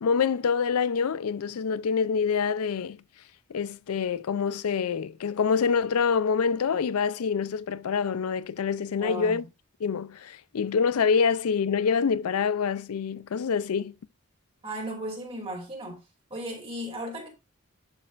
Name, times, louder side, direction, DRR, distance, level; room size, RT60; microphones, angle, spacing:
voice 1, 0.0-3.0 3.5-9.4 9.8-13.9, left 6 dB, 85° left, 0.4 m, -26 dB
voice 2, 9.0-9.4 14.6-16.0 16.3-17.3, right 1 dB, 25° right, 2.7 m, -35 dB
11.0 x 5.4 x 2.5 m
head